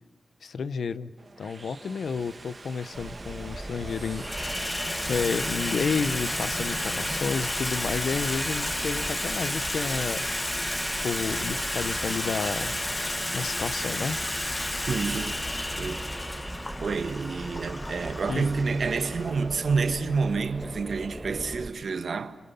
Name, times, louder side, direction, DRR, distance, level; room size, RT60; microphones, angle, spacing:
voice 1, 0.4-1.1 1.4-4.7 5.1-10.2 11.0-12.8 13.3-14.2 18.3-18.5, left 5 dB, 80° left, 0.8 m, -31 dB
sound 1, 1.2-17.1, right 3 dB, 35° right, 1.6 m, -42 dB
Water tap faucet / Sink (filling or washing), 2.2-2.3 3.2-3.6 3.9-21.5, left 1 dB, 15° left, 1.0 m, -32 dB
sound 2, 2.9-21.7, right 1 dB, 20° right, 1.3 m, -40 dB
voice 2, 14.9-15.4 15.8-16.1 16.8-22.4, right 4 dB, 60° right, 1.3 m, -28 dB
28.5 x 26.0 x 5.7 m
wide cardioid pair, 155°, 0 cm